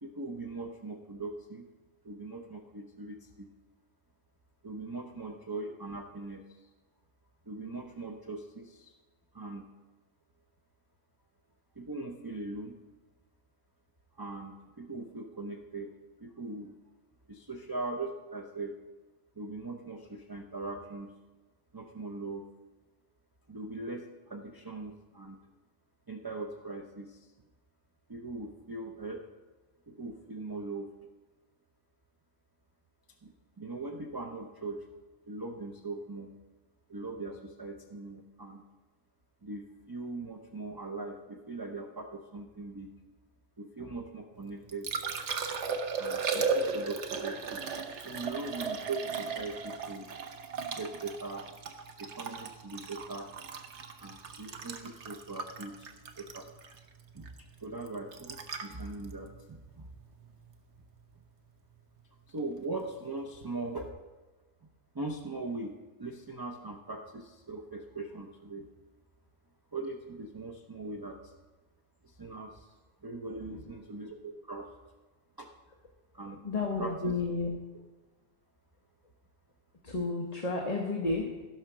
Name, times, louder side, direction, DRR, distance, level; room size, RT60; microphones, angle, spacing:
voice 1, 0.0-1.7 2.0-3.5 4.6-6.6 7.5-8.9 9.3-9.7 11.8-12.8 14.2-15.9 16.2-16.7 17.3-18.7 19.4-21.1 21.7-22.5 23.5-25.4 26.1-27.3 28.1-29.2 29.9-30.9 33.2-34.9 35.3-36.3 36.9-38.6 39.4-42.9 43.6-44.9 45.8-47.6 48.0-50.1 50.7-51.4 52.0-53.3 54.0-55.9 56.2-56.5 57.1-57.3 57.6-59.9 62.3-63.9 64.9-68.7 69.7-71.3 72.0-72.7 73.0-74.7 75.4-75.5 76.1-76.4 76.8-77.1, right 3 dB, 25° right, 3 dB, 0.5 m, -40 dB
Liquid, 44.4-60.5 63.3-63.5, right 5 dB, 65° right, 1.1 m, -36 dB
voice 2, 76.4-77.6 79.8-81.4, left 3 dB, 35° left, 1 dB, 1.0 m, -32 dB
15.0 x 5.6 x 6.0 m, 1.2 s
omnidirectional pair, 1.3 m